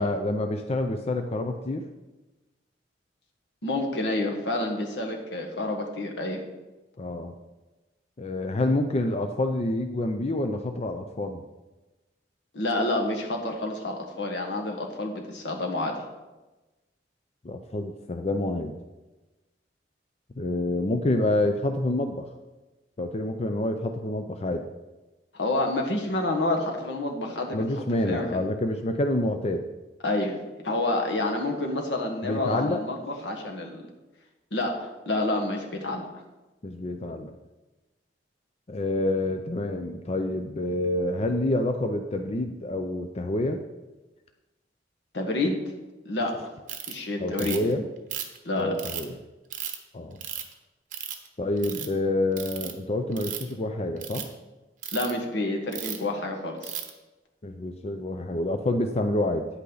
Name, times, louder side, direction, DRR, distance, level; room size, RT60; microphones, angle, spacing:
voice 1, 0.0-1.9 7.0-7.3 8.2-11.4 17.4-18.7 20.4-22.3 23.0-24.7 27.5-29.7 32.2-32.8 36.6-37.3 38.7-43.6 47.2-47.9 48.6-49.2 49.9-50.2 51.4-54.3 57.4-59.5, left 1 dB, 35° left, 6 dB, 0.5 m, -27 dB
voice 2, 3.6-6.4 12.5-15.9 25.3-28.4 30.0-30.4 30.6-33.9 34.5-36.1 45.1-45.6 46.0-46.4 46.9-47.6 48.5-48.7 54.9-56.8, left 2 dB, 80° left, 1 dB, 1.6 m, -28 dB
Ratchet pawl, 46.7-46.9 47.4-47.7 48.1-49.0 49.5-49.8 50.2-50.5 50.9-51.3 51.6-51.9 52.4-52.7 53.1-53.5 54.0-54.2 54.8-55.1 55.7-56.0 56.6-56.9, right 9 dB, 50° right, 1.0 m, -34 dB
9.8 x 8.5 x 4.0 m, 1.1 s
head